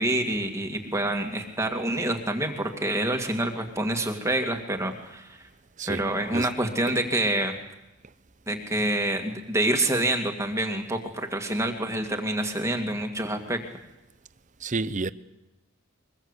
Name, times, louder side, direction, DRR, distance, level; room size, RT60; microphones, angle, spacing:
voice 1, 0.0-5.4 5.9-7.5 8.5-13.6, right 1 dB, 15° right, 2.2 m, -27 dB
voice 2, 5.8-6.5 14.6-15.1, right 3 dB, 35° right, 0.7 m, -30 dB
23.5 x 21.0 x 8.2 m
head